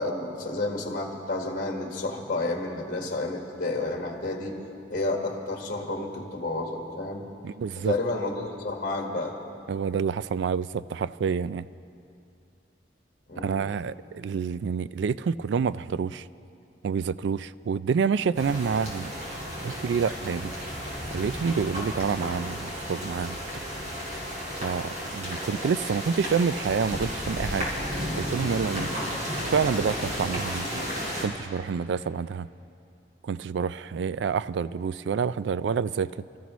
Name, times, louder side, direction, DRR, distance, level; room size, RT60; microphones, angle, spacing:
voice 1, 0.0-4.6 4.9-7.3 7.8-9.4 13.3-13.7, left 2 dB, 50° left, 1 dB, 1.5 m, -30 dB
voice 2, 7.4-7.9 9.7-11.6 13.4-16.3 16.8-19.1 19.6-20.5 21.1-23.4 24.6-27.7 28.2-28.9 29.5-30.7 31.2-32.5 33.2-36.1, right 6 dB, 75° right, 17 dB, 0.3 m, -28 dB
sound 1, 18.3-31.2, equal, 40° right, 4.2 m, -33 dB
28.0 x 14.0 x 3.1 m, 2.6 s
head